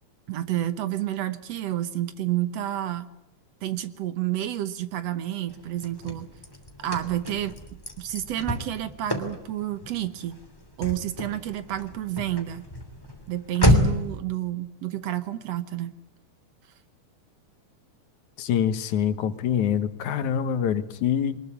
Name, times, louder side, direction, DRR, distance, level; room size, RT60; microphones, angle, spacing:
voice 1, 0.3-3.1 3.6-6.3 6.8-7.5 8.0-10.4 10.8-12.7 13.3-15.9, right 13 dB, 65° right, 12 dB, 2.0 m, -29 dB
Car / Slam, 5.5-14.2, left 1 dB, 10° left, 2.4 m, -29 dB
voice 2, 18.4-21.4, left 9 dB, 80° left, 12 dB, 2.7 m, -25 dB
23.0 x 20.5 x 8.4 m, 0.88 s
omnidirectional pair, 3.4 m